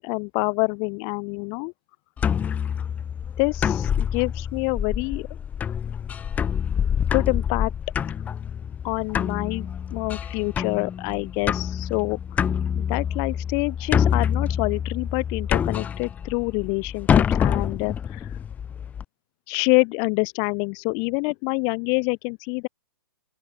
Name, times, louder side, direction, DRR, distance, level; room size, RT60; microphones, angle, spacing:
voice 1, 0.0-1.7 3.4-5.3 7.1-7.7 8.8-12.2 12.8-18.3 19.5-22.7, left 40 dB or more, 35° left, 1.0 m, -26 dB
sound 1, 2.2-19.0, left 8 dB, 15° left, 0.3 m, -26 dB
open air
hypercardioid pair, 120°, 12 cm